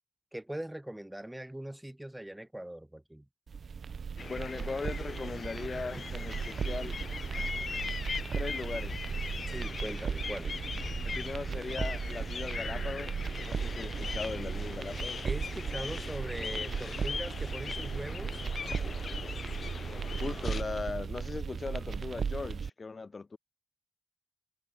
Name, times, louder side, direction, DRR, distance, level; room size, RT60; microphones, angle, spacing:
voice 1, 0.3-3.2 5.7-6.0 9.5-10.6 15.2-18.4, right 1 dB, 5° right, 1.6 m, -41 dB
sound 1, 3.5-22.7, right 6 dB, 60° right, 0.7 m, -36 dB
sound 2, 4.2-20.6, left 5 dB, 55° left, 1.8 m, -40 dB
voice 2, 4.3-7.0 8.3-9.1 9.9-10.0 11.0-15.2 20.2-23.4, left 4 dB, 35° left, 0.9 m, -39 dB
wide cardioid pair, 140°, 0 cm